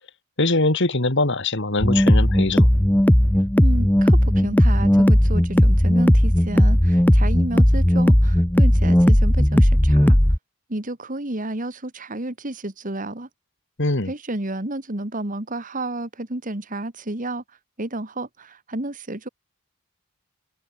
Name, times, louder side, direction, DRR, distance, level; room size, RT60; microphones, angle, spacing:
voice 1, 0.4-2.7 13.8-14.1, left 2 dB, 55° left, 2.6 m, -22 dB
sound 1, 1.8-10.4, equal, 10° left, 0.7 m, -16 dB
voice 2, 3.6-10.2 10.7-13.3 14.1-17.4 17.8-19.3, right 1 dB, 35° right, 1.9 m, -31 dB
open air
head